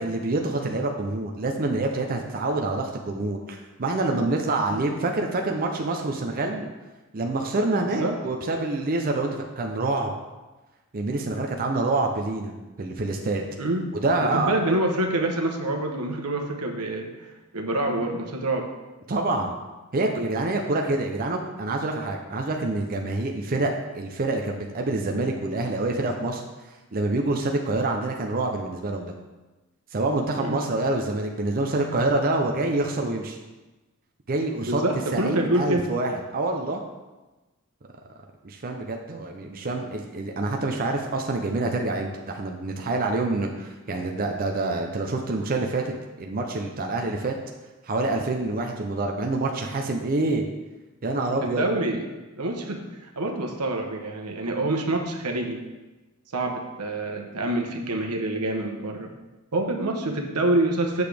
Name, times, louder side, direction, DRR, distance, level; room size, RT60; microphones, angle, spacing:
voice 1, 0.0-6.7 7.1-9.3 9.6-10.1 10.9-12.5 12.8-13.4 14.0-14.5 19.1-19.6 19.9-26.4 26.9-29.1 29.9-33.4 34.3-34.8 35.1-36.8 38.4-45.9 46.2-47.3 47.8-50.5 51.0-51.6, right 2 dB, 40° right, 2 dB, 0.6 m, -26 dB
voice 2, 7.8-8.2 13.6-13.9 14.3-18.7 30.4-30.6 34.6-35.8 51.4-52.1 52.4-55.6 56.3-59.1 59.5-61.0, right 2 dB, 85° right, 3 dB, 1.0 m, -26 dB
8.0 x 6.7 x 3.4 m, 1.1 s
head